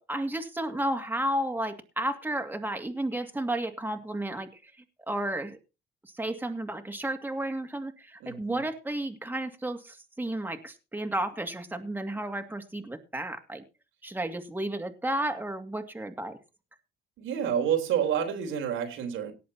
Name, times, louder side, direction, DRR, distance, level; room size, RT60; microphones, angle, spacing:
voice 1, 0.1-4.7 5.1-5.6 6.0-13.6 14.0-16.4, right 1 dB, 10° right, 5 dB, 2.4 m, -32 dB
voice 2, 8.2-8.6 17.2-19.3, right 9 dB, 90° right, 5 dB, 3.6 m, -29 dB
18.0 x 7.6 x 4.2 m, 0.29 s
cardioid pair, 90°, 20 cm